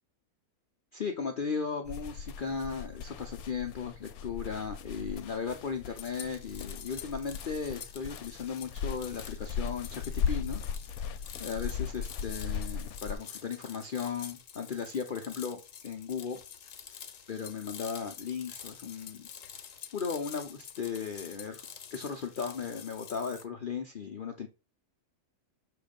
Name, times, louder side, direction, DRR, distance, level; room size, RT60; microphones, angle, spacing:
voice 1, 0.9-10.6 11.4-16.4 16.9-17.0 17.3-19.3 19.9-21.7 21.9-24.5, left 6 dB, 50° left, 0.7 m, -36 dB
sound 1, 1.9-13.1, left 7 dB, 90° left, 1.1 m, -38 dB
sound 2, 6.0-23.4, left 8 dB, 65° left, 1.1 m, -48 dB
6.7 x 3.1 x 5.1 m
omnidirectional pair, 1.5 m